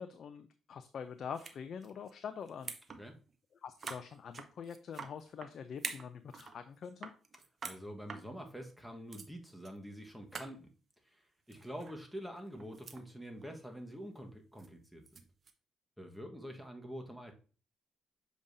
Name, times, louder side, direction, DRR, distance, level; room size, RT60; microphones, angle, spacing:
voice 1, 0.0-2.7 3.6-7.1, left 7 dB, 60° left, 9 dB, 0.5 m, -45 dB
sound 1, 1.3-1.6 1.8-2.1 2.5-3.0 3.3-3.4 3.8-5.5 5.8-6.6 6.8-7.8 8.1-8.2 8.8-8.9 9.1-9.3 9.6-9.8 10.0-10.1 10.3-10.5 11.5-12.0 12.4-13.0 13.4-13.6 14.6-15.5, right 5 dB, 45° right, 0.8 m, -45 dB
voice 2, 7.6-10.7 11.0-15.0 16.0-17.3, equal, ahead, 3 dB, 1.4 m, -46 dB
7.1 x 5.1 x 2.7 m, 0.38 s
cardioid pair, 90°, 0 cm